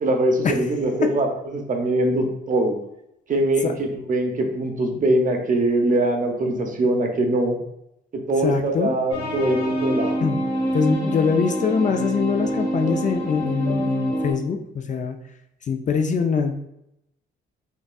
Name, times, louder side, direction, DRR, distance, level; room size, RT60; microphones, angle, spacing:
voice 1, 0.0-2.8 3.3-7.6 8.3-10.1, right 1 dB, 40° right, 3 dB, 0.8 m, -22 dB
voice 2, 8.4-8.9 10.2-10.4 10.7-15.2 15.7-16.6, left 5 dB, 40° left, 6 dB, 0.4 m, -23 dB
sound 1, 9.1-14.3, right 1 dB, 80° left, 1.4 m, -26 dB
5.2 x 2.3 x 2.3 m, 0.79 s
cardioid pair, 90°, 20 cm